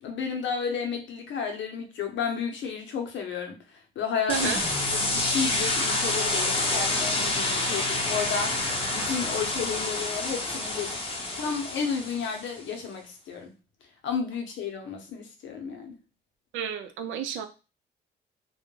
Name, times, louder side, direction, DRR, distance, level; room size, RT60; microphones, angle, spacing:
voice 1, 0.0-4.5 4.9-11.0 11.4-13.6 14.0-16.0, left 6 dB, 70° left, 3 dB, 0.7 m, -32 dB
sound 1, 4.3-12.5, left 2 dB, 25° left, 0.6 m, -28 dB
voice 2, 4.3-4.6 16.5-17.5, right 8 dB, 80° right, 9 dB, 0.4 m, -31 dB
2.3 x 2.1 x 3.0 m, 0.31 s
cardioid pair, 90°, 20 cm